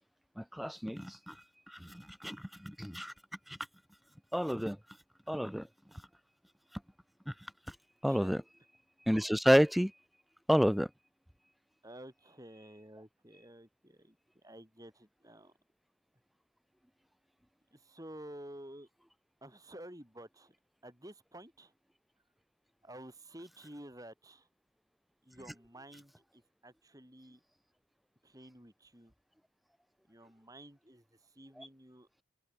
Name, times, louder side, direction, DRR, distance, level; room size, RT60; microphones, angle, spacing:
voice 1, 0.4-1.3 1.7-3.1 3.5-3.6 4.3-4.8 5.3-5.7 7.3-7.4 8.0-8.4 9.1-9.9 10.5-10.9 31.6-31.7, equal, ahead, 0.3 m, -30 dB
voice 2, 11.8-14.2 14.4-15.5 17.7-18.9 19.4-20.5 20.8-21.7 22.8-24.5 25.2-27.4 28.2-29.1 30.1-31.0 31.4-32.1, right 1 dB, 20° right, 7.0 m, -51 dB
head